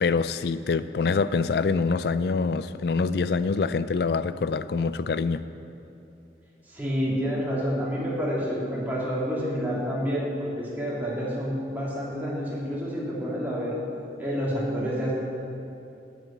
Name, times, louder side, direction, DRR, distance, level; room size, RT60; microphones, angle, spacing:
voice 1, 0.0-5.4, left 4 dB, 60° left, 13 dB, 0.4 m, -25 dB
voice 2, 6.7-13.8 14.2-15.1, equal, 10° right, -6 dB, 2.5 m, -28 dB
9.3 x 8.4 x 7.3 m, 2.7 s
head